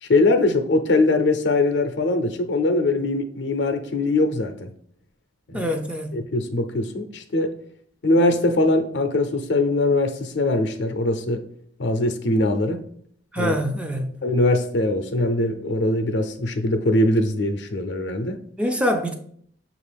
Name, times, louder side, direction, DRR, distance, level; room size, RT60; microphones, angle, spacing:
voice 1, 0.0-4.7 5.5-5.7 6.1-7.5 8.0-11.4 11.8-12.8 13.4-13.5 14.2-18.4, left 2 dB, 70° left, 0.5 m, -22 dB
voice 2, 5.5-6.1 13.3-14.2 18.6-19.1, equal, 5° right, 0.3 m, -25 dB
6.0 x 2.5 x 3.3 m
head